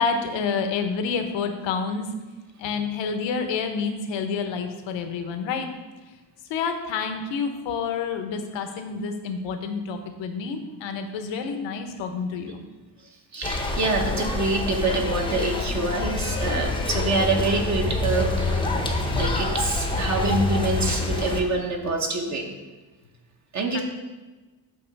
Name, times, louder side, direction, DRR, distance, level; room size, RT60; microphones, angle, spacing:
voice 1, 0.0-2.1 2.6-5.7 6.5-12.6 23.7-23.8, left 5 dB, 80° left, 6 dB, 0.9 m, -28 dB
voice 2, 13.3-18.6 19.1-22.4 23.5-23.8, right 3 dB, 40° right, 2 dB, 0.8 m, -26 dB
sound 1, 13.4-21.4, left 2 dB, 10° left, 0.6 m, -26 dB
7.6 x 3.0 x 5.8 m, 1.2 s
cardioid pair, 135°, 44 cm